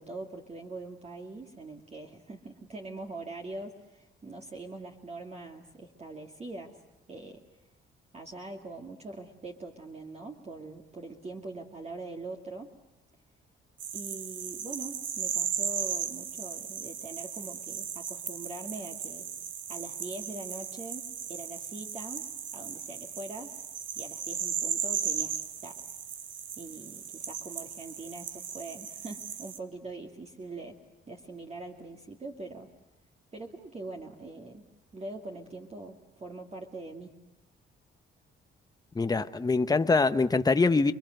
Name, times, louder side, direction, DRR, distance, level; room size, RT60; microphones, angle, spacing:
voice 1, 0.0-6.8 7.1-7.4 8.1-12.7 13.9-19.3 19.7-22.3 22.5-23.6 24.0-25.8 26.6-30.8 31.1-32.7 33.3-34.6 34.9-37.1 39.1-39.3, right 2 dB, 30° right, 2.5 m, -43 dB
sound 1, 13.8-29.6, right 8 dB, 70° right, 1.7 m, -36 dB
voice 2, 38.9-40.9, left 3 dB, 20° left, 1.0 m, -24 dB
29.0 x 23.0 x 7.9 m
cardioid pair, 90°, 20 cm